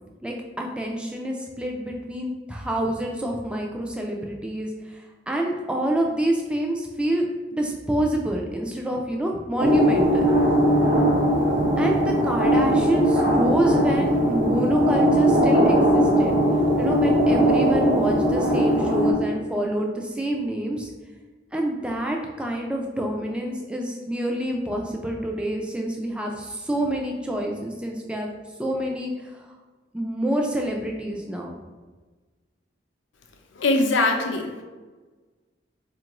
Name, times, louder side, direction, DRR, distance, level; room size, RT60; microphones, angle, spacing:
voice 1, 0.2-4.7 5.3-10.3 11.8-16.3 16.8-20.9 21.5-28.3 28.6-29.4 29.9-31.5, right 1 dB, 5° right, 0 dB, 0.3 m, -27 dB
sound 1, 9.6-19.1, equal, 70° right, 0.9 m, -20 dB
voice 2, 33.5-34.6, left 2 dB, 80° left, 3 dB, 0.5 m, -22 dB
4.3 x 2.5 x 3.0 m, 1.3 s
head